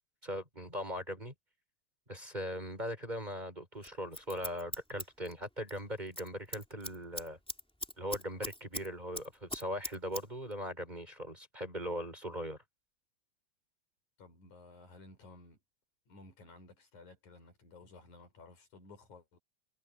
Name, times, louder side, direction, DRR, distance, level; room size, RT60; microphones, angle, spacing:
voice 1, 0.2-1.3 2.1-7.4 8.0-12.6, equal, 15° right, 4.7 m, -40 dB
Scissors, 3.8-5.8 6.1-6.3 6.5-8.9 9.1-10.2 10.5-10.6, equal, ahead, 2.6 m, -40 dB
voice 2, 14.2-15.6 16.1-19.4, left 3 dB, 85° left, 7.4 m, -55 dB
omnidirectional pair, 3.3 m